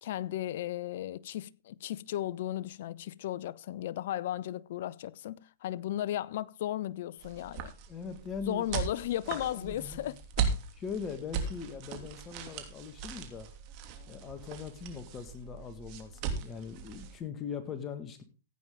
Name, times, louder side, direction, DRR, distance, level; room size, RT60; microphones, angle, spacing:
voice 1, 0.0-7.7 8.5-10.5, left 13 dB, 60° left, 0.6 m, -35 dB
sound 1, 7.2-17.2, right 6 dB, 45° right, 2.8 m, -38 dB
voice 2, 7.9-8.7 9.3-10.2 10.8-13.5 14.1-18.2, left 6 dB, 25° left, 1.9 m, -41 dB
15.5 x 9.1 x 3.8 m
hypercardioid pair, 120°, 0 cm